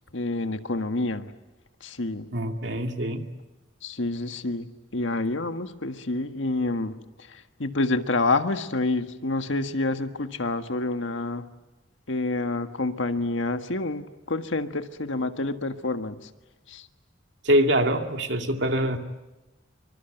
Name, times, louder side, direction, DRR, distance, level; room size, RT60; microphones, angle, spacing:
voice 1, 0.1-1.3 1.8-2.3 3.8-6.9 7.3-11.5 12.1-16.3 16.7-16.9, left 2 dB, 80° left, 8 dB, 1.6 m, -28 dB
voice 2, 2.3-3.3 17.4-19.0, equal, 65° right, 5 dB, 2.4 m, -24 dB
26.5 x 24.5 x 9.1 m, 1.0 s
head